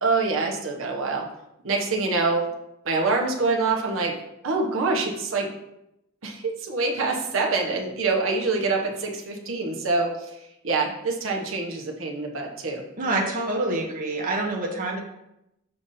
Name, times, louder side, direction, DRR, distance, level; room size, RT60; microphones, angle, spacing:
voice 1, 0.0-1.2 1.6-2.4 2.8-4.1 4.4-5.5 6.2-10.1 10.6-12.8, right 3 dB, 75° right, 0 dB, 1.1 m, -25 dB
voice 2, 13.0-15.0, right 2 dB, 40° right, -1 dB, 0.9 m, -26 dB
6.9 x 2.7 x 5.5 m, 0.84 s
head